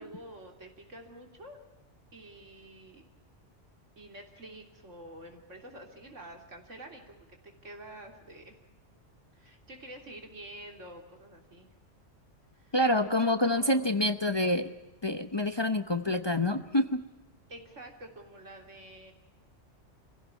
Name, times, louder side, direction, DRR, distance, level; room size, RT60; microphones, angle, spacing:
voice 1, 0.0-1.6 2.1-3.0 4.0-8.5 9.3-11.7 12.5-13.9 17.5-19.1, right 1 dB, 80° right, 3 dB, 3.7 m, -48 dB
voice 2, 12.7-14.7 15.0-17.0, left 1 dB, 25° left, 9 dB, 0.8 m, -27 dB
25.5 x 16.0 x 8.4 m, 1.0 s
omnidirectional pair, 1.2 m